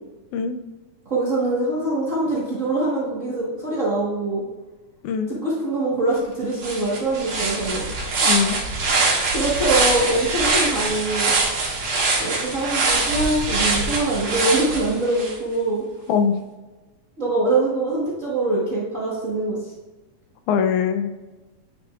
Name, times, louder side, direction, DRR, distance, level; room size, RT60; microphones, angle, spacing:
voice 1, 1.0-4.4 5.3-7.8 9.0-11.3 12.2-15.8 17.2-19.7, right 2 dB, 45° right, -6 dB, 1.1 m, -23 dB
voice 2, 5.0-5.4 8.2-8.6 16.1-16.4 20.5-21.1, left 7 dB, 90° left, 8 dB, 2.1 m, -22 dB
sound 1, 6.2-6.3 6.6-15.3, right 3 dB, 65° right, 2.6 m, -23 dB
9.3 x 6.1 x 2.4 m, 1.2 s
omnidirectional pair, 3.4 m